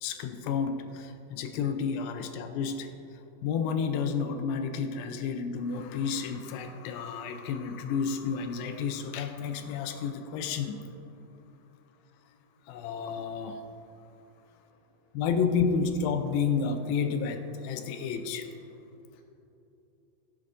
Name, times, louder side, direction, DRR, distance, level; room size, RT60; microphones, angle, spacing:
voice 1, 0.0-2.9 3.4-10.8 12.7-13.6 15.1-18.5, left 6 dB, 80° left, 7 dB, 2.2 m, -31 dB
voice 2, 14.3-15.2 19.0-19.2, left 2 dB, 55° left, -2 dB, 2.1 m, -72 dB
16.0 x 7.9 x 2.5 m, 2.8 s
omnidirectional pair, 4.4 m